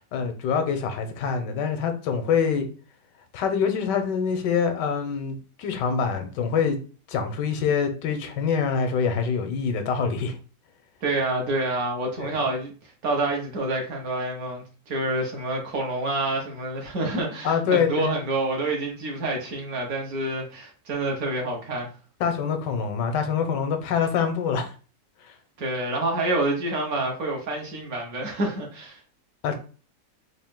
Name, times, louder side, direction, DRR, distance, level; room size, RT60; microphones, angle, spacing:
voice 1, 0.0-2.7 3.3-6.8 7.1-10.4 12.2-12.3 17.4-18.1 22.2-24.7 25.2-25.3 29.4-29.6, left 6 dB, 85° left, 1.3 m, -25 dB
voice 2, 11.0-12.7 13.0-21.9 25.6-29.0, right 2 dB, 60° right, 1.4 m, -27 dB
3.9 x 2.5 x 3.6 m
omnidirectional pair, 1.8 m